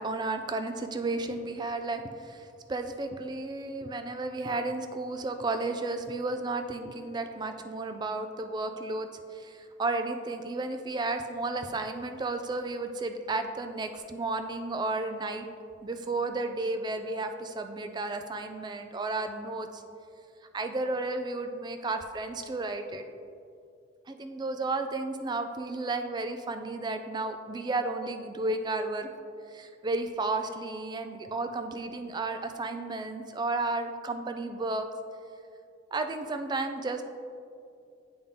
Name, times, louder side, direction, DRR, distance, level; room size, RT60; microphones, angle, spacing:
voice 1, 0.0-15.5 15.8-19.8 20.5-23.0 24.1-29.1 29.5-34.9 35.9-37.0, right 2 dB, 25° right, 7 dB, 0.3 m, -33 dB
8.6 x 3.8 x 3.5 m, 2.4 s
head